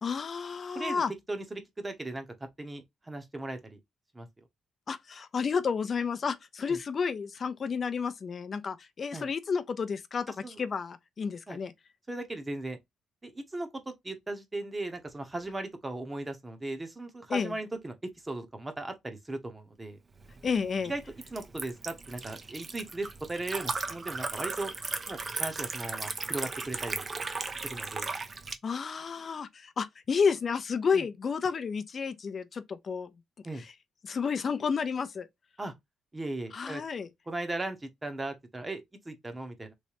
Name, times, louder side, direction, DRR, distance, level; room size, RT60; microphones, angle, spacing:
voice 1, 0.0-1.1 4.9-11.7 17.3-17.5 20.4-20.9 28.6-33.1 33.6-33.7 34.0-35.3 36.5-37.1, left 5 dB, 45° left, 0.5 m, -31 dB
voice 2, 1.3-2.3 2.6-3.8 4.1-4.3 6.7-6.8 9.1-9.3 10.4-10.6 11.5-11.6 12.1-12.8 13.2-18.0 18.2-20.0 20.8-21.0 21.3-24.7 25.1-27.1 27.6-28.1 30.9-31.1 33.4-33.6 35.6-35.7 36.1-36.8 37.3-39.7, right 2 dB, 20° right, 0.9 m, -37 dB
Liquid, 20.2-28.6, right 3 dB, 35° right, 0.6 m, -37 dB
3.2 x 3.0 x 2.8 m
cardioid pair, 90°, 0 cm